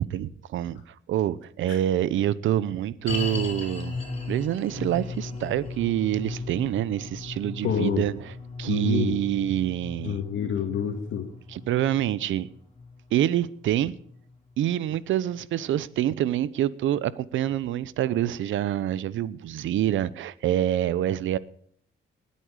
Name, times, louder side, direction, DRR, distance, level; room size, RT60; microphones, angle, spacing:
voice 1, 0.0-3.9 4.3-8.2 8.6-10.2 11.5-12.5 13.1-14.0 14.6-21.4, right 11 dB, 75° right, 0.8 m, -26 dB
sound 1, 3.1-14.4 14.6-14.7 15.4-15.5, left 3 dB, 30° left, 5.4 m, -37 dB
voice 2, 7.6-8.1 8.7-9.2 10.0-11.3, left 7 dB, 70° left, 2.2 m, -27 dB
19.5 x 8.6 x 5.0 m
cardioid pair, 90°, 20 cm